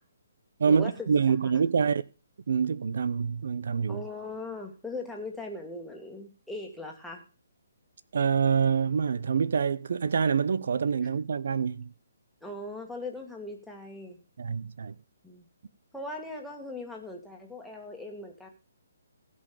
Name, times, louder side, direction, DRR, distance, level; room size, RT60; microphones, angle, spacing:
voice 1, 0.6-2.1 2.5-4.0 8.1-11.9 14.4-14.9, right 6 dB, 65° right, 0.8 m, -26 dB
voice 2, 3.9-7.2 12.4-14.2 15.2-15.4 15.9-18.5, left 2 dB, ahead, 2.0 m, -39 dB
16.0 x 5.5 x 7.0 m
hypercardioid pair, 160°, 0 cm